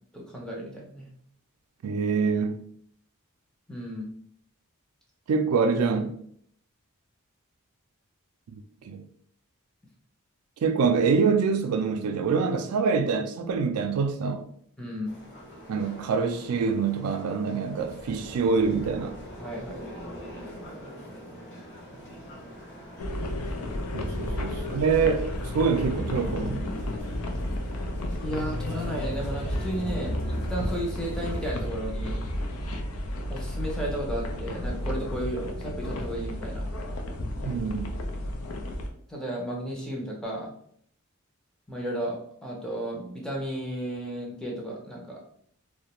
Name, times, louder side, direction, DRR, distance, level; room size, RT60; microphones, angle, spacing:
voice 1, 0.1-1.1 3.7-4.1 14.8-15.1 19.4-19.8 24.3-24.6 28.2-32.2 33.3-36.6 39.1-40.5 41.7-45.2, right 1 dB, 5° left, 0.5 m, -34 dB
voice 2, 1.8-2.6 5.3-6.1 8.5-9.0 10.6-14.4 15.7-19.2 23.9-25.2 25.5-26.7 37.4-37.9, right 5 dB, 90° right, 0.4 m, -25 dB
sound 1, 15.0-31.7, equal, 55° left, 1.0 m, -44 dB
sound 2, 23.0-38.9, left 1 dB, 80° left, 0.4 m, -32 dB
2.4 x 2.1 x 2.9 m
head